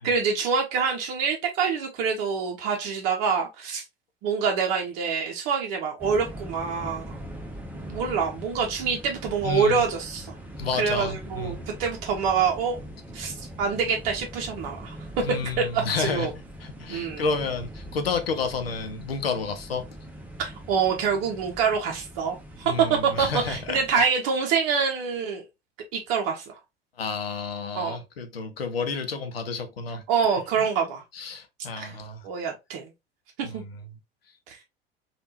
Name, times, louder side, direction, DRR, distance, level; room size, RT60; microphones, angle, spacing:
voice 1, 0.0-3.8 4.2-7.2 7.7-10.4 10.8-12.8 13.1-15.0 15.7-16.3 16.9-17.2 20.4-25.4 25.9-26.5 27.7-27.9 30.1-31.0 31.8-31.9 32.2-32.9 33.4-33.6 34.5-34.6, right 6 dB, 50° right, 0.7 m, -26 dB
sound 1, 6.0-23.9, equal, 5° right, 0.8 m, -41 dB
voice 2, 9.4-9.8 10.6-11.6 15.2-16.3 16.6-19.8 22.6-23.8 27.0-30.0 30.6-30.7 31.1-32.2 33.4-33.6, left 4 dB, 80° left, 0.6 m, -30 dB
3.4 x 2.4 x 2.7 m
figure-of-eight pair, 65°, 29 cm